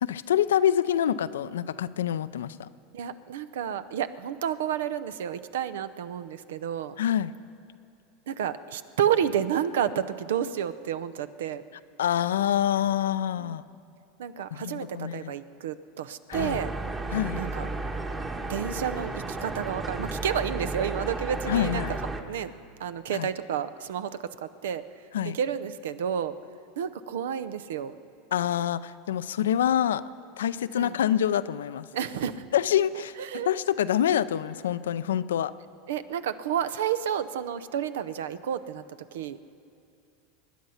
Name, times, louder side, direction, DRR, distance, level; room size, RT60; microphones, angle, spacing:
voice 1, 0.0-2.7 7.0-7.3 12.0-13.6 14.5-15.3 16.3-16.6 17.1-17.4 21.5-21.9 23.1-23.3 25.1-25.4 28.3-30.0 30.4-31.9 32.5-35.5, left 10 dB, 85° left, 15 dB, 0.4 m, -26 dB
voice 2, 2.9-7.0 8.3-11.6 13.4-13.5 14.2-16.7 17.4-17.7 18.5-22.0 22.3-22.5 22.8-24.1 24.4-24.8 25.3-26.4 26.8-28.0 30.8-30.9 31.9-32.5 32.9-33.5 35.9-38.8 39.1-39.4, right 9 dB, 80° right, 13 dB, 0.6 m, -30 dB
sound 1, 16.3-22.2, right 2 dB, 20° right, 1.3 m, -33 dB
24.5 x 10.5 x 5.7 m, 2.6 s
hypercardioid pair, 95°, 0 cm